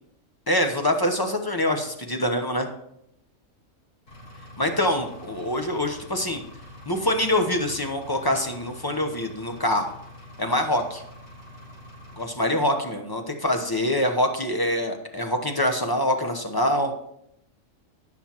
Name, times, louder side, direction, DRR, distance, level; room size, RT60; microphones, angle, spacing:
voice 1, 0.5-2.7 4.6-6.4 6.9-9.9 10.4-11.0 12.2-16.9, left 1 dB, 20° left, 4 dB, 0.8 m, -25 dB
Engine, 4.1-12.2, left 1 dB, 70° left, 2.9 m, -45 dB
17.5 x 6.1 x 3.0 m, 0.76 s
omnidirectional pair, 1.4 m